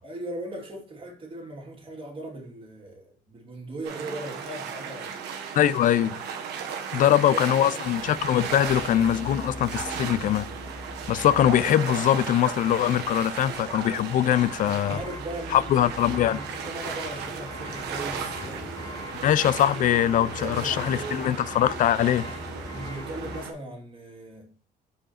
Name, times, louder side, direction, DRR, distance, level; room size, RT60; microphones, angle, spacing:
voice 1, 0.0-5.1 6.9-7.4 7.7-7.9 14.9-15.9 16.3-19.1 20.4-21.2 22.7-24.7, right 1 dB, 30° right, 2.6 m, -38 dB
sound 1, 3.8-23.5, right 6 dB, 80° right, 1.3 m, -36 dB
voice 2, 5.5-6.2 6.9-10.5 11.1-15.0 15.5-16.4 19.2-22.3, left 11 dB, 50° left, 0.4 m, -22 dB
sound 2, 7.8-23.4, left 3 dB, 25° left, 0.8 m, -42 dB
5.2 x 4.9 x 4.2 m
cardioid pair, 110°, 17 cm